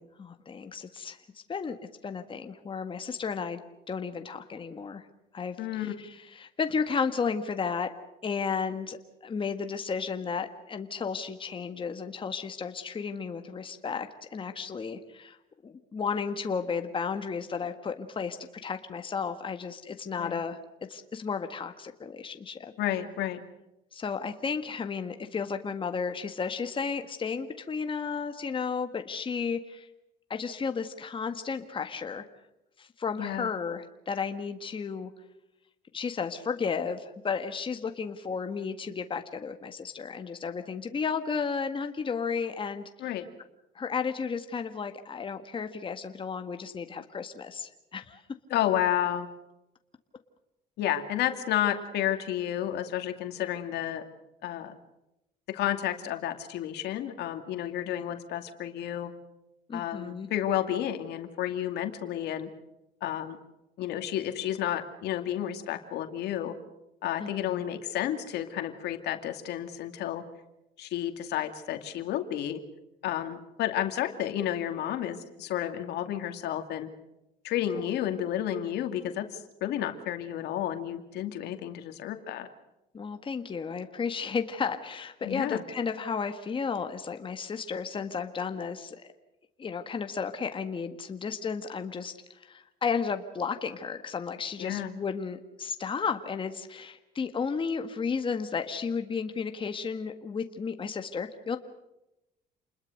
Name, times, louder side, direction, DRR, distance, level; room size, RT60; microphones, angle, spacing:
voice 1, 0.2-1.2 1.5-1.8 2.0-5.1 5.3-7.9 8.2-9.0 9.2-15.4 15.6-20.6 20.9-22.7 23.9-29.9 30.3-32.3 32.8-35.1 35.9-42.9 43.7-48.2 57.8-58.2 59.7-60.3 67.2-67.6 77.7-77.8 82.9-89.1 89.6-101.6, left 5 dB, 30° left, 7 dB, 1.7 m, -33 dB
voice 2, 5.6-5.9 20.2-20.4 22.8-23.4 33.2-33.5 43.0-43.2 48.5-49.3 50.8-54.0 54.4-54.7 55.5-59.1 59.7-62.5 63.0-63.4 63.8-66.5 67.0-70.2 70.8-72.6 73.0-76.9 77.4-82.5 85.2-85.6 94.6-94.9, left 11 dB, 80° left, 7 dB, 2.4 m, -31 dB
28.5 x 21.0 x 6.6 m, 0.92 s
cardioid pair, 110°, 17 cm